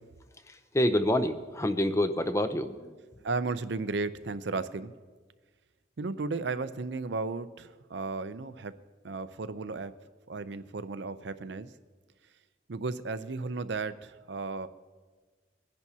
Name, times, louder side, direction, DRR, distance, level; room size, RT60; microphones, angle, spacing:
voice 1, 0.5-2.9, left 1 dB, 15° left, 9 dB, 0.6 m, -27 dB
voice 2, 3.2-4.9 6.0-8.7 9.0-9.9 10.3-11.7 12.7-14.7, right 3 dB, 60° right, 13 dB, 0.6 m, -34 dB
23.5 x 10.5 x 2.8 m, 1.4 s
head